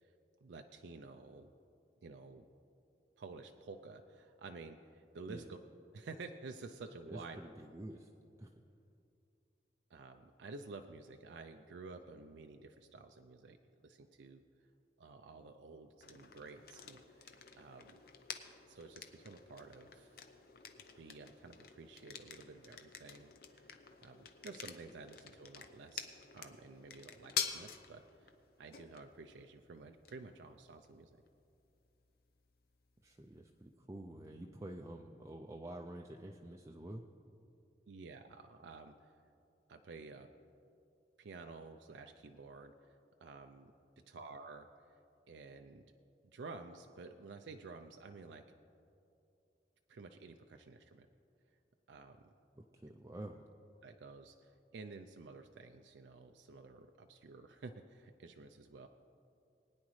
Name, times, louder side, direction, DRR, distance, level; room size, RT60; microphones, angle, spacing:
voice 1, 0.4-1.5 2.0-2.4 3.2-5.6 5.9-7.4 9.9-14.7 15.0-18.0 18.7-20.2 21.0-23.8 24.0-28.3 28.6-31.1 37.9-39.2 39.7-40.3 41.2-43.7 44.1-45.0 45.3-45.9 46.3-48.4 49.9-51.1 51.9-52.2 53.8-58.9, right 3 dB, 85° right, 5 dB, 0.5 m, -52 dB
voice 2, 7.1-8.1 8.4-8.5 33.0-37.0 52.6-53.5, right 1 dB, 15° right, 2 dB, 0.4 m, -48 dB
sound 1, 16.0-33.7, left 7 dB, 55° left, 0.7 m, -48 dB
20.5 x 9.6 x 3.2 m, 2.7 s
head